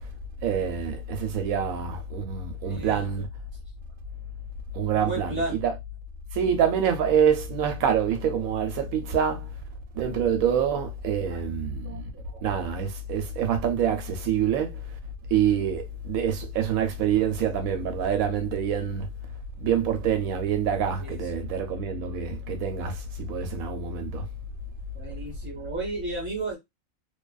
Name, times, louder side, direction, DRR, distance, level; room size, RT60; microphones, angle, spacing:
voice 1, 0.4-3.3 4.7-5.7 6.3-9.5 9.9-12.1 12.4-14.8 15.3-19.1 19.6-24.2, right 7 dB, 85° right, 1.0 m, -26 dB
voice 2, 2.6-3.1 4.9-5.6 10.0-10.2 11.3-11.4 11.8-12.0 12.3-12.4 21.0-21.4 24.9-26.6, right 2 dB, 10° right, 1.0 m, -34 dB
2.5 x 2.3 x 2.3 m
omnidirectional pair, 1.5 m